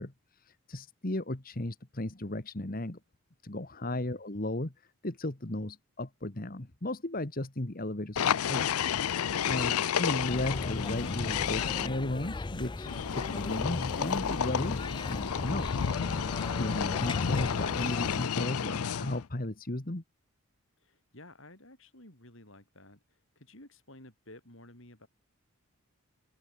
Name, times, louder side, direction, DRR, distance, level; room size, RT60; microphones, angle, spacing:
voice 1, 0.0-3.0 3.4-8.7 9.1-9.2 9.5-14.8 15.1-15.7 16.6-20.0, left 1 dB, 40° left, 1.5 m, -35 dB
voice 2, 3.9-4.2 20.8-25.1, left 1 dB, 60° left, 7.5 m, -53 dB
sound 1, 8.2-11.9 12.9-19.3, left 8 dB, 80° left, 0.5 m, -31 dB
sound 2, 10.3-18.3, left 2 dB, 20° left, 0.4 m, -37 dB
open air
head